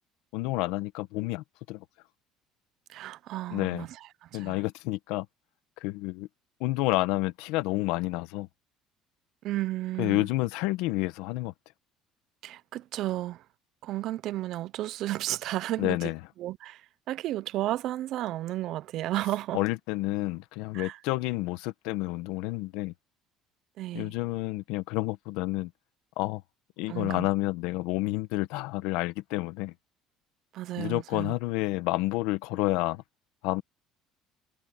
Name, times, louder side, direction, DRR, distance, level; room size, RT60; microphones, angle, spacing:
voice 1, 0.3-1.8 3.5-3.9 4.3-5.3 5.8-6.3 6.6-8.5 10.0-11.5 15.8-16.2 19.5-22.9 23.9-25.7 26.2-26.4 26.8-29.7 30.8-33.0 33.4-33.6, left 19 dB, 85° left, 1.2 m, -29 dB
voice 2, 2.9-3.9 4.2-4.6 9.4-10.3 12.4-13.4 13.8-16.1 16.4-19.6 20.7-21.0 23.8-24.1 26.9-27.3 30.5-31.3, right 15 dB, 50° right, 0.4 m, -33 dB
cardioid pair, 175°, 0 cm